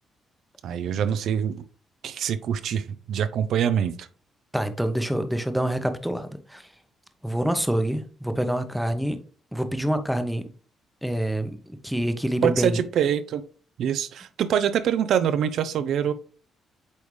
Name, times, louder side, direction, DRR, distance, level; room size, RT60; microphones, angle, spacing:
voice 1, 0.6-1.6 2.0-4.1 12.4-13.4 13.8-16.1, right 8 dB, 75° right, 0.5 m, -24 dB
voice 2, 4.5-6.6 7.2-9.2 9.5-10.4 11.0-12.8, right 1 dB, ahead, 0.8 m, -26 dB
8.2 x 3.5 x 3.2 m
cardioid pair, 90°, 0 cm